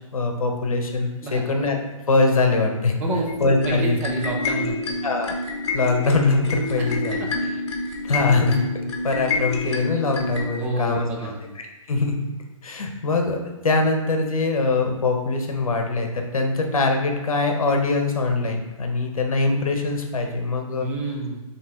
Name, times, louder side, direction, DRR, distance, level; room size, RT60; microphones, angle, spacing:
voice 1, 0.1-1.8 2.1-3.0 3.4-4.0 5.0-5.3 5.7-7.3 8.0-8.6 9.0-11.3 11.9-12.2 12.6-20.9, left 3 dB, 80° left, 3 dB, 1.1 m, -22 dB
sound 1, 3.3-10.5, left 3 dB, 55° left, 1.4 m, -28 dB
voice 2, 3.6-4.8 6.8-6.9 7.2-7.3 10.6-11.4 20.8-21.4, right 2 dB, 10° right, -1 dB, 0.4 m, -29 dB
7.4 x 2.9 x 4.5 m, 1.1 s
hypercardioid pair, 155°, 18 cm